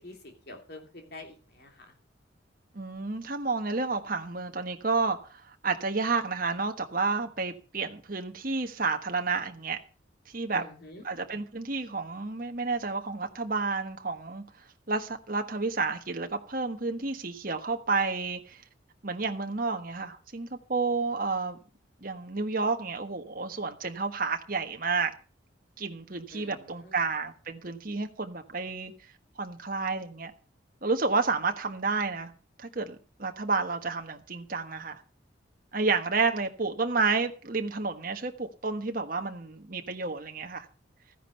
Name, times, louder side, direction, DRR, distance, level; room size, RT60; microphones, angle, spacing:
voice 1, 0.0-1.7 10.5-11.0 26.3-27.0, left 2 dB, 55° left, 3.0 m, -47 dB
voice 2, 2.7-9.8 10.3-10.6 11.0-14.4 14.9-18.6 19.0-21.6 22.0-25.1 25.8-28.9 29.4-30.3 30.8-32.3 32.6-35.0 35.7-40.7, right 4 dB, 45° right, 1.3 m, -30 dB
14.0 x 10.0 x 5.5 m
head